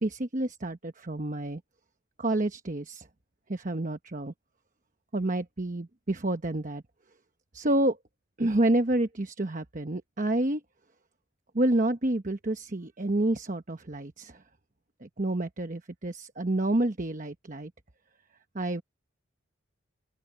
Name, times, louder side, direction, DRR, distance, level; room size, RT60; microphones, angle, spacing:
voice 1, 0.0-1.6 2.2-3.1 3.5-4.3 5.1-6.8 7.5-8.0 8.4-10.6 11.5-14.4 15.0-17.7 18.5-18.8, right 1 dB, 40° right, 1.1 m, -29 dB
open air
head